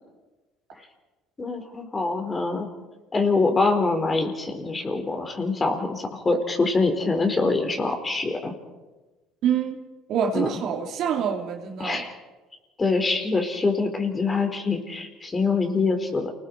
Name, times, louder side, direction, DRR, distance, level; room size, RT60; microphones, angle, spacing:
voice 1, 1.4-2.7 3.1-8.5 10.3-10.5 11.8-12.1 12.8-16.3, left 3 dB, 25° left, 5 dB, 4.4 m, -24 dB
voice 2, 9.4-9.8 10.1-12.1, right 8 dB, 60° right, 2 dB, 3.0 m, -26 dB
29.0 x 20.0 x 4.8 m, 1.2 s
hypercardioid pair, 75°, 0 cm